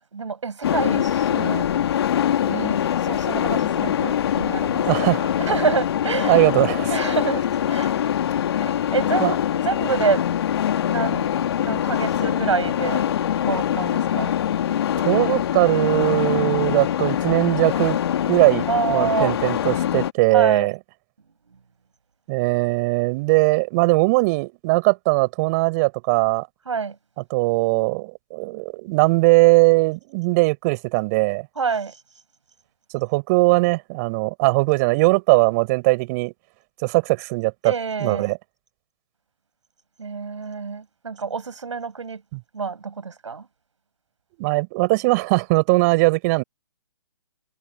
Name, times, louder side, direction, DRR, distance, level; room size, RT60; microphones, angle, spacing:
voice 1, 0.1-1.7 2.4-2.8 3.0-5.1 5.5-6.4 6.9-7.9 8.6-10.2 10.9-11.3 11.6-13.0 13.4-14.3 18.7-19.3 20.3-20.7 26.7-27.0 31.6-31.9 37.6-38.3 40.0-42.2 42.5-43.5, right 5 dB, 75° right, 5.5 m, -27 dB
sound 1, 0.6-20.1, left 10 dB, 55° left, 2.3 m, -23 dB
voice 2, 4.8-5.3 6.3-6.9 9.2-9.3 15.0-18.0 18.3-20.8 22.3-26.5 27.3-31.5 32.9-36.3 36.8-37.7 38.0-38.4 44.4-46.4, right 26 dB, 35° right, 5.9 m, -20 dB
figure-of-eight pair, 135°, 16 cm